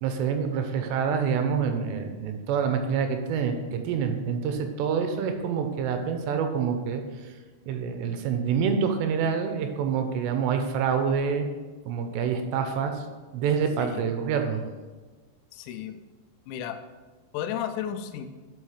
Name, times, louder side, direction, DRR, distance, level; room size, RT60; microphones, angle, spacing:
voice 1, 0.0-7.0 7.7-11.5 11.9-13.1 13.3-14.6, right 6 dB, 85° right, 6 dB, 2.8 m, -27 dB
voice 2, 15.5-16.0 16.5-16.8 17.3-18.3, left 9 dB, 90° left, 9 dB, 2.9 m, -33 dB
12.0 x 5.4 x 3.2 m, 1.3 s
omnidirectional pair, 5.1 m